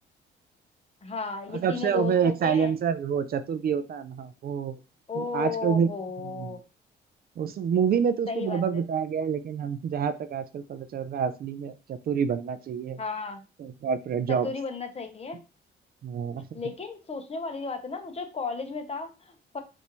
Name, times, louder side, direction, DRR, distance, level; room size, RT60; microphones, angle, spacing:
voice 1, 1.0-2.7 5.1-6.6 8.3-8.6 13.0-13.4 14.3-15.4 16.5-19.6, left 4 dB, 30° left, 6 dB, 0.9 m, -34 dB
voice 2, 1.6-4.8 5.1-5.9 6.2-6.5 7.4-13.0 13.6-14.5 16.0-16.6, right 7 dB, 50° right, 12 dB, 0.4 m, -27 dB
5.4 x 2.7 x 3.0 m, 0.30 s
cardioid pair, 90°, 20 cm